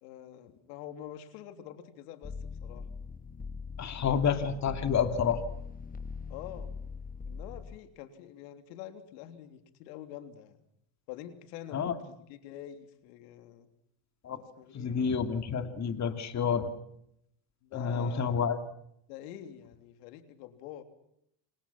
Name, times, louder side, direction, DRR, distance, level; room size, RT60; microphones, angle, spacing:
voice 1, 0.0-2.9 6.3-6.7 7.3-10.6 11.1-13.7 14.6-14.9 17.6-18.4 19.1-20.8, left 11 dB, 80° left, 8 dB, 3.4 m, -46 dB
sound 1, 2.2-7.8, left 5 dB, 15° left, 1.6 m, -41 dB
voice 2, 3.8-5.4 11.7-12.0 14.2-14.4 14.7-16.7 17.7-18.6, left 6 dB, 35° left, 8 dB, 2.7 m, -29 dB
29.0 x 26.0 x 5.9 m, 0.75 s
supercardioid pair, 110°, 48 cm